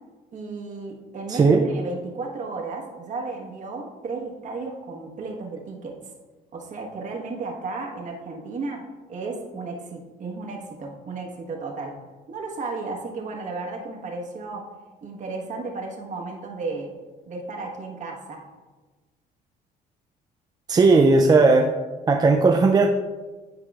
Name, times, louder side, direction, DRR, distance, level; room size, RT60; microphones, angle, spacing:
voice 1, 0.3-6.0 6.5-12.0 12.3-14.7 15.0-16.9 17.3-18.4, right 3 dB, 45° right, 1 dB, 1.2 m, -34 dB
voice 2, 1.3-1.7 20.7-21.7 22.1-22.9, right 3 dB, 25° right, 2 dB, 0.4 m, -16 dB
9.7 x 4.8 x 2.4 m, 1.3 s
cardioid pair, 110°, 17 cm